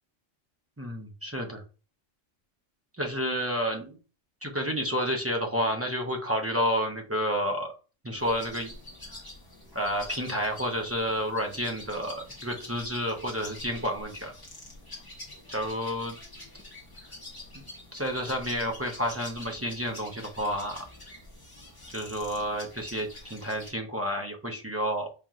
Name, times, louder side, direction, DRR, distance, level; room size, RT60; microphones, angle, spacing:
voice 1, 0.8-1.6 3.0-4.0 4.4-7.7 8.0-8.7 9.7-14.3 15.5-16.1 17.9-20.8 21.9-25.1, equal, 20° right, 1 dB, 0.4 m, -30 dB
sound 1, 8.2-23.7, left 1 dB, 20° left, 1.2 m, -46 dB
5.0 x 2.9 x 2.4 m, 0.34 s
omnidirectional pair, 1.3 m